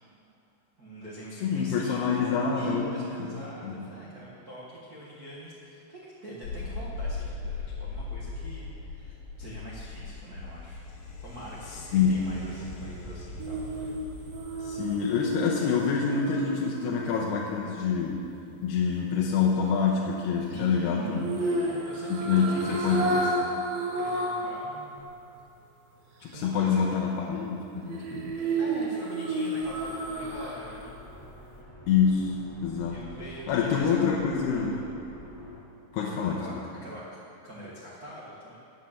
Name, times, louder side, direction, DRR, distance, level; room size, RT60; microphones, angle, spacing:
voice 1, 0.8-10.8 11.2-13.9 20.5-23.3 23.9-25.1 26.3-26.8 28.6-30.9 32.9-34.2 34.5-34.9 36.1-36.5 36.8-37.0 37.4-38.6, right 1 dB, 85° right, -7 dB, 0.8 m, -43 dB
voice 2, 1.4-3.9 11.9-12.3 14.6-18.2 18.6-21.4 22.1-23.2 26.2-28.4 31.9-33.0 33.5-34.8 35.9-36.6, left 6 dB, 85° left, -2 dB, 3.0 m, -27 dB
sound 1, 6.4-15.0, left 3 dB, 70° left, 3.4 m, -39 dB
sound 2, 13.4-17.6 21.2-24.6 25.0-25.1 27.9-30.8 31.1-31.3, right 2 dB, 70° right, 2.9 m, -31 dB
sound 3, 29.6-35.6, left 1 dB, 5° left, 1.6 m, -48 dB
9.5 x 8.3 x 7.4 m, 2.8 s
omnidirectional pair, 4.7 m